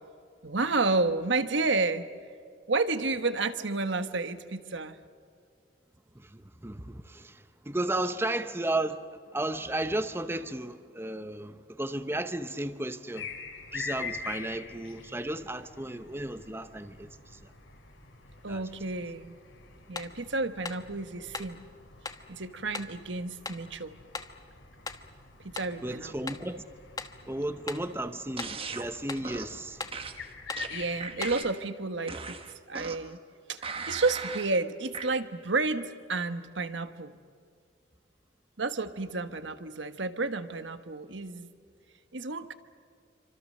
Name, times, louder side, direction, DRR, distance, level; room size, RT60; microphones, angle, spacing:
voice 1, 0.4-2.1 2.7-5.0 18.4-19.3 19.9-21.6 22.3-23.9 25.4-26.4 30.5-32.4 32.7-33.2 33.5-37.1 38.6-41.5 42.1-42.5, right 3 dB, 70° right, 1.3 m, -31 dB
voice 2, 6.2-9.0 9.3-13.3 13.7-17.1 18.5-18.6 25.8-26.6 27.3-29.8, right 1 dB, 10° right, 0.8 m, -34 dB
sound 1, 13.1-31.3, left 5 dB, 85° left, 3.9 m, -45 dB
sound 2, 19.9-20.2 20.6-20.9 21.3-21.6 22.0-22.3 22.7-23.0 23.4-23.7 24.1-24.4 24.9-25.1 25.5-25.8 26.3-26.5 27.0-27.2 27.7-27.9 28.4-28.6 29.1-29.3 29.8-30.0 30.5-30.7 31.2-31.4, left 4 dB, 20° left, 1.1 m, -39 dB
sound 3, 28.4-28.9 29.2-29.6 29.9-31.6 32.1-33.1 33.6-34.5 34.9-35.1, right 4 dB, 30° right, 1.3 m, -39 dB
27.5 x 25.5 x 6.6 m
head